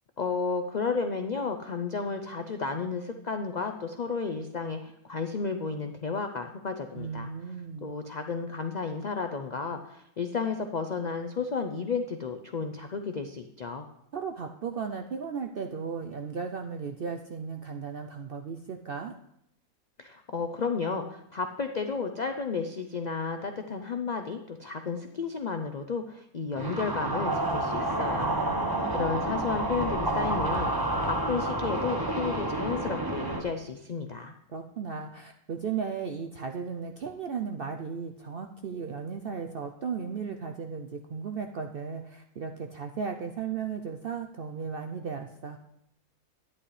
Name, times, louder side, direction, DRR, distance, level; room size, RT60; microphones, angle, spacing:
voice 1, 0.2-7.3 7.8-13.9 20.0-28.3 28.9-34.3, left 5 dB, 75° left, 6 dB, 0.4 m, -32 dB
voice 2, 6.9-7.9 14.1-19.1 28.1-29.2 34.5-45.6, right 6 dB, 65° right, 4 dB, 0.5 m, -36 dB
sound 1, 26.6-33.4, right 1 dB, 20° right, 0.9 m, -29 dB
11.5 x 10.0 x 3.2 m, 0.75 s
omnidirectional pair, 1.6 m